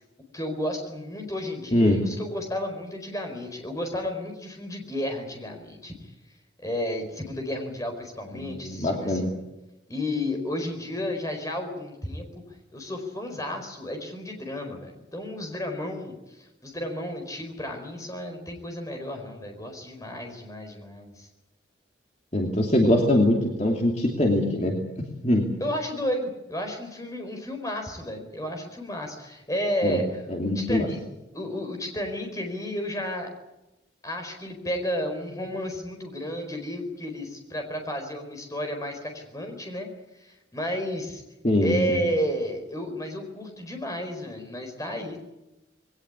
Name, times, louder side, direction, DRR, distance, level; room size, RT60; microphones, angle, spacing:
voice 1, 0.3-5.9 6.6-9.3 9.9-12.2 12.7-16.2 16.6-21.3 25.6-30.2 30.5-31.0 31.3-33.3 34.0-39.9 40.5-41.2 41.6-45.2, equal, 20° left, 4 dB, 4.6 m, -32 dB
voice 2, 8.3-9.3 22.3-25.4 29.8-30.0 30.3-30.9 41.4-42.0, left 1 dB, 40° left, 1 dB, 2.8 m, -23 dB
21.0 x 18.5 x 9.8 m, 0.98 s
head